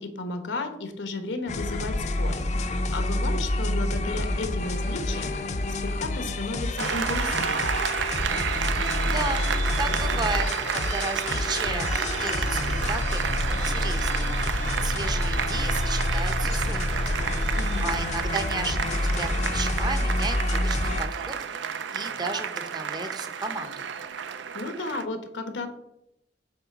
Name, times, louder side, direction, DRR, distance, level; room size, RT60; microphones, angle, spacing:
voice 1, 0.0-5.3 5.8-7.7 17.5-17.9 24.5-25.7, left 2 dB, 85° left, 8 dB, 1.1 m, -33 dB
sound 1, 1.5-21.0, left 2 dB, 40° left, 0.5 m, -28 dB
Applause, 6.8-25.1, right 7 dB, 80° right, 0.5 m, -31 dB
voice 2, 8.7-9.4 9.8-12.6 12.9-14.4 14.8-21.6 21.9-23.8, right 3 dB, 25° right, 8 dB, 0.7 m, -34 dB
7.8 x 3.3 x 5.9 m, 0.83 s
head